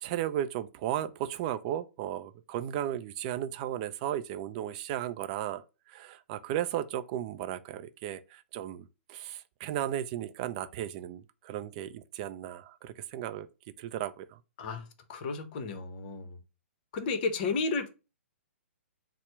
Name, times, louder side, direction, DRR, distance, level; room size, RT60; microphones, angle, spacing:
voice 1, 0.0-13.5 13.8-14.4, right 11 dB, 35° right, 0.3 m, -35 dB
voice 2, 15.1-16.4 16.9-17.9, left 4 dB, 40° left, 0.7 m, -32 dB
4.2 x 2.0 x 4.5 m
figure-of-eight pair, 120°, 7 cm